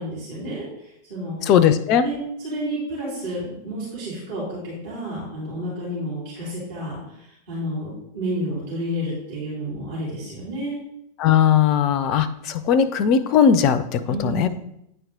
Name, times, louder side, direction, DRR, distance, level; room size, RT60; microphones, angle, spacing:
voice 1, 0.0-1.4 2.0-2.2 2.4-10.8 14.0-14.5, equal, 55° right, -8 dB, 3.1 m, -30 dB
voice 2, 1.5-2.0 11.2-14.5, left 8 dB, 40° left, 14 dB, 0.5 m, -18 dB
9.1 x 4.6 x 3.7 m, 0.79 s
figure-of-eight pair, 90°, 0 cm